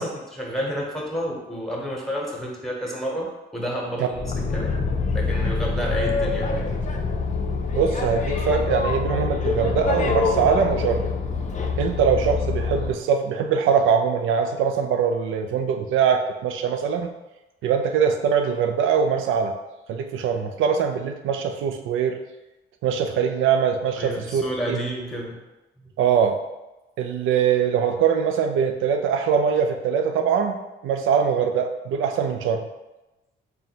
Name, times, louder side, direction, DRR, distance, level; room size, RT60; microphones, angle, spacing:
voice 1, 0.0-4.2 4.5-4.7 5.1-6.6 24.0-25.4, equal, ahead, -2 dB, 1.0 m, -30 dB
Boat Water vehicle, 4.1-13.0, left 4 dB, 40° left, 0.5 m, -25 dB
voice 2, 7.7-11.1 11.8-17.1 17.6-19.5 19.9-22.2 22.8-24.4 24.7-24.8 26.0-26.4 27.0-30.6 30.8-32.7, right 7 dB, 85° right, 6 dB, 0.4 m, -22 dB
3.7 x 2.2 x 4.3 m, 1.0 s
cardioid pair, 90°, 20 cm